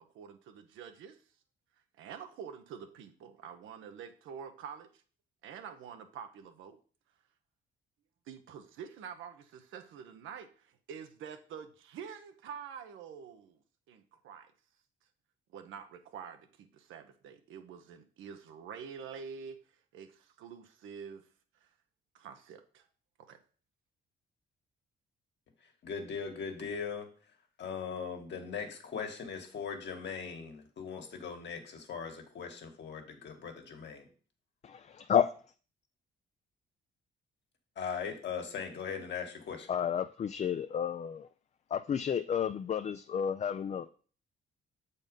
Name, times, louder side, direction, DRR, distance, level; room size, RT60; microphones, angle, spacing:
voice 1, 0.1-1.2 2.0-4.9 5.4-6.8 8.3-13.6 13.9-14.5 15.5-19.6 19.9-21.3 22.1-22.8 23.3-23.4, right 7 dB, 85° right, 7 dB, 0.9 m, -47 dB
voice 2, 25.8-27.1 27.6-34.1 37.7-39.7, left 6 dB, 60° left, 4 dB, 1.7 m, -39 dB
voice 3, 39.7-41.3 41.7-43.9, left 8 dB, 35° left, 11 dB, 0.4 m, -31 dB
7.3 x 4.1 x 5.3 m, 0.41 s
cardioid pair, 90°, 20 cm